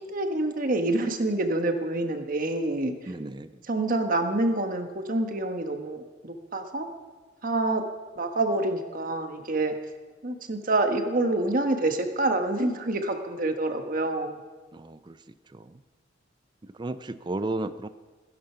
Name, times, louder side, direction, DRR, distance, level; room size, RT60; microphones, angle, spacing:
voice 1, 0.0-3.1 3.7-6.9 7.4-7.8 8.2-9.8 10.2-14.4, right 2 dB, 45° right, 6 dB, 1.3 m, -27 dB
voice 2, 3.1-3.5 14.7-15.2 15.5-15.8 16.6-17.9, right 2 dB, 25° right, 12 dB, 0.4 m, -34 dB
15.5 x 10.5 x 5.7 m, 1.3 s
head